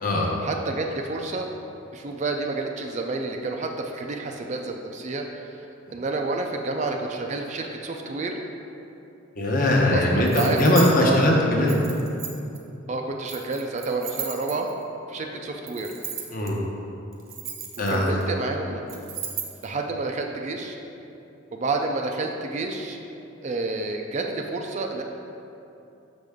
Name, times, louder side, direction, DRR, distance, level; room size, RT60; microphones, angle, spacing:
voice 1, 0.4-1.5 1.9-5.6 5.9-8.4 9.9-10.7 11.0-11.3 12.9-14.7 15.1-15.9 17.9-18.8 19.6-20.8 21.5-23.0 23.4-25.0, right 3 dB, 35° right, 3 dB, 0.4 m, -29 dB
voice 2, 9.4-11.8 16.3-16.6 17.8-18.2, left 1 dB, 45° left, -2 dB, 0.9 m, -20 dB
sound 1, 10.2-10.9 11.7-12.6 13.3-14.8 15.7-16.5 17.1-18.2 18.9-19.7, right 8 dB, 80° right, 0.8 m, -35 dB
6.5 x 5.3 x 3.5 m, 2.8 s
head